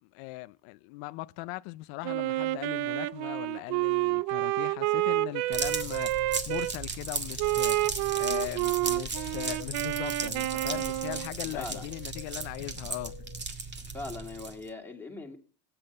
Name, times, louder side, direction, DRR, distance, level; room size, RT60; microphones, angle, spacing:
voice 1, 0.1-13.1, left 20 dB, 80° left, 0.7 m, -39 dB
Wind instrument woodwind instrument, 2.0-6.7 7.4-11.3, right 18 dB, 65° right, 0.7 m, -29 dB
sound 1, 5.5-14.7, right 4 dB, 25° right, 1.9 m, -36 dB
sound 2, 8.3-13.5, left 11 dB, 50° left, 1.3 m, -50 dB
voice 2, 11.5-11.9 13.9-15.4, left 3 dB, 5° left, 2.6 m, -40 dB
18.5 x 8.8 x 6.8 m
cardioid pair, 150°, 47 cm